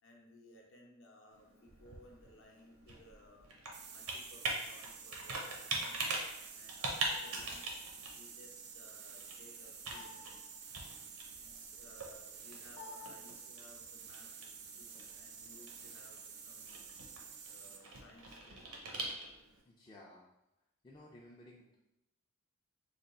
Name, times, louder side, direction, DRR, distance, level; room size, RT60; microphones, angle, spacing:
voice 1, 0.0-6.1 6.5-7.8 8.1-10.5 11.4-16.9 17.4-19.3, left 1 dB, 60° left, 0 dB, 0.7 m, -61 dB
Computer keyboard, 1.3-19.6, right 2 dB, 80° right, 0.7 m, -43 dB
sound 1, 3.7-17.9, right 6 dB, 50° right, 0.4 m, -51 dB
voice 2, 19.6-20.3 20.8-21.8, left 1 dB, 20° left, -4 dB, 0.4 m, -56 dB
3.3 x 2.3 x 3.9 m, 0.89 s
head